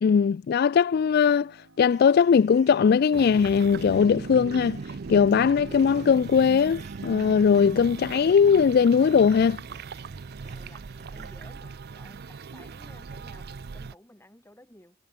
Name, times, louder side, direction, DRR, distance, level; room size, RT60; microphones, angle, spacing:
voice 1, 0.0-9.6, left 6 dB, 50° left, 0.3 m, -20 dB
Piano, 0.9-9.3 9.8-10.8, right 1 dB, 70° right, 7.8 m, -61 dB
sound 1, 1.9-11.4, right 3 dB, 35° right, 1.9 m, -53 dB
sound 2, 3.1-13.9, right 4 dB, 50° right, 0.5 m, -38 dB
voice 2, 10.5-15.0, left 1 dB, 10° left, 7.0 m, -54 dB
head